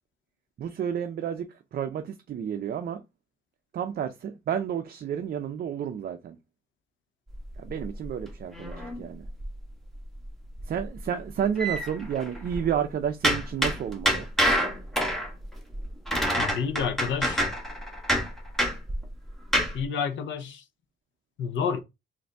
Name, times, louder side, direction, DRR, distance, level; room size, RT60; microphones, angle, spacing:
voice 1, 0.6-3.0 3.7-6.4 7.6-9.3 10.6-14.3, right 8 dB, 50° right, 0.5 m, -31 dB
sound 1, 7.3-9.7 10.0-10.2 10.5-12.7 13.2-19.8, equal, ahead, 1.3 m, -27 dB
voice 2, 16.4-17.4 19.7-20.6 21.4-21.8, left 6 dB, 70° left, 0.7 m, -29 dB
3.9 x 2.6 x 3.4 m
cardioid pair, 90°, 20 cm